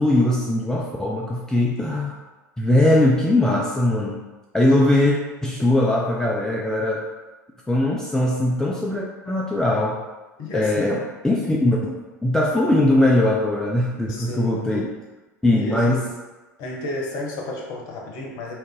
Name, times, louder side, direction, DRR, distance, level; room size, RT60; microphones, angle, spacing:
voice 1, 0.0-2.2 2.6-4.2 4.5-7.0 7.7-10.0 10.5-11.0 11.2-14.9 15.4-16.0, left 1 dB, 5° left, -3 dB, 0.3 m, -20 dB
voice 2, 10.4-10.9 14.1-14.8 15.5-16.1 16.6-18.5, left 1 dB, 45° left, -1 dB, 0.8 m, -32 dB
2.6 x 2.5 x 3.6 m, 1.2 s
figure-of-eight pair, 80°, 10 cm